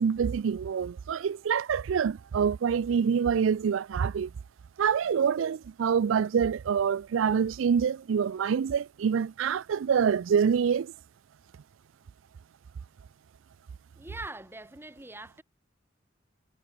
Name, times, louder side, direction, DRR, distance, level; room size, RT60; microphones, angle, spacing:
voice 1, 0.0-4.3 4.8-10.9, right 7 dB, 75° right, 0.4 m, -26 dB
voice 2, 14.0-15.4, right 2 dB, 10° right, 3.8 m, -42 dB
head